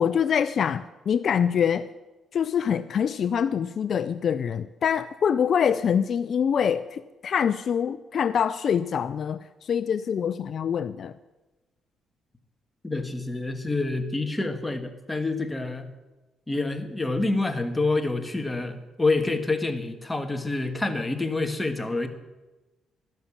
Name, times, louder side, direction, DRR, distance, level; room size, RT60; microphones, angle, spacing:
voice 1, 0.0-1.9 2.3-11.1, left 7 dB, 55° left, 14 dB, 0.4 m, -25 dB
voice 2, 12.8-15.9 16.5-22.1, left 2 dB, 15° left, 6 dB, 1.7 m, -27 dB
13.0 x 10.5 x 7.3 m, 1.1 s
cardioid pair, 90°, 0 cm